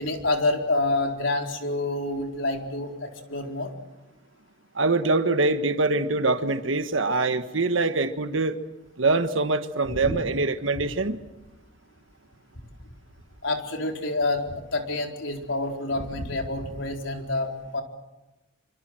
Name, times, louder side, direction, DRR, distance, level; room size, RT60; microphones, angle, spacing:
voice 1, 0.0-3.7 9.9-10.2 13.4-17.8, left 2 dB, 80° left, 3 dB, 4.3 m, -28 dB
voice 2, 4.7-8.6 9.0-11.2, right 3 dB, 90° right, 9 dB, 1.4 m, -24 dB
26.5 x 25.5 x 7.7 m, 1.1 s
head